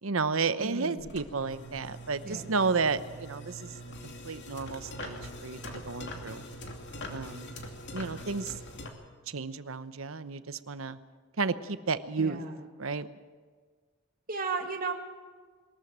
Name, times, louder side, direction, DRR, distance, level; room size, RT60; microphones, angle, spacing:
voice 1, 0.0-3.7 4.0-5.2 5.4-6.5 7.1-7.5 7.9-8.6 9.3-11.0 11.4-12.4 12.8-13.1, right 4 dB, 70° right, 13 dB, 0.9 m, -32 dB
voice 2, 0.6-1.1 2.2-2.4 12.2-12.6 14.3-14.9, right 4 dB, 45° right, 2 dB, 2.0 m, -34 dB
sound 1, 1.0-8.9, equal, 55° left, 2.7 m, -43 dB
22.0 x 14.0 x 8.9 m, 1.5 s
head